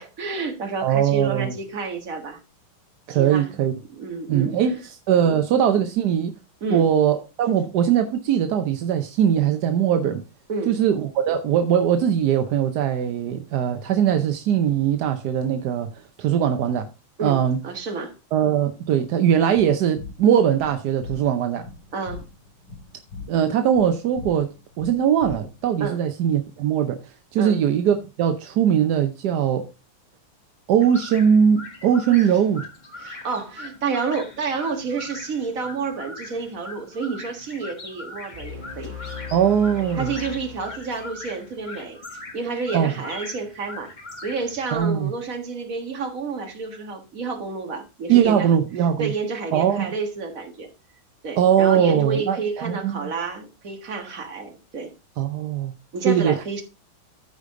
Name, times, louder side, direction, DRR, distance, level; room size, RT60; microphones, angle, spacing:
voice 1, 0.0-2.4 3.1-3.6 4.0-4.5 5.2-5.4 6.6-6.9 10.5-10.7 17.2-18.1 21.9-22.2 25.8-26.0 27.4-27.6 33.0-38.9 40.0-43.9 44.2-48.5 49.0-50.7 51.2-54.9 55.9-56.6, right 4 dB, 40° right, 1.8 m, -30 dB
voice 2, 0.8-1.5 3.1-3.7 4.3-4.8 5.1-6.3 6.7-10.2 10.7-15.9 16.2-16.9 17.2-17.6 18.3-21.6 23.3-24.5 24.8-27.0 27.3-29.7 30.7-32.7 39.3-40.1 42.7-42.9 44.7-45.1 48.1-49.1 49.5-49.9 51.4-53.1 55.2-55.7 56.1-56.4, right 9 dB, 65° right, 1.0 m, -20 dB
sound 1, 19.5-25.8, left 4 dB, 55° left, 3.3 m, -41 dB
sound 2, 30.8-44.8, left 3 dB, 25° left, 1.2 m, -41 dB
sound 3, 38.3-41.6, left 5 dB, 20° right, 2.7 m, -38 dB
13.0 x 5.0 x 3.7 m
omnidirectional pair, 2.4 m